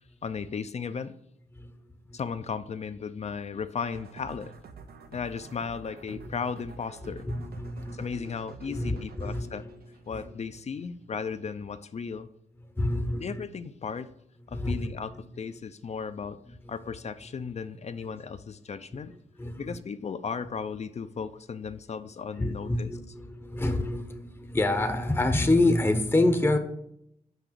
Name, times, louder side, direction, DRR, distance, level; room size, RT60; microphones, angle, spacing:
voice 1, 0.2-1.1 2.1-4.5 5.1-7.3 7.9-9.6 10.1-12.3 13.2-14.1 14.5-16.4 16.7-19.1 19.6-23.0, left 6 dB, 45° left, 11 dB, 0.5 m, -35 dB
sound 1, 3.9-10.7, right 5 dB, 80° right, 0.8 m, -48 dB
voice 2, 7.0-8.3 8.7-9.7 12.8-13.5 14.5-15.0 19.4-19.8 22.4-26.6, left 2 dB, 15° left, 7 dB, 0.7 m, -27 dB
6.0 x 5.0 x 6.7 m, 0.75 s
cardioid pair, 85°, 16 cm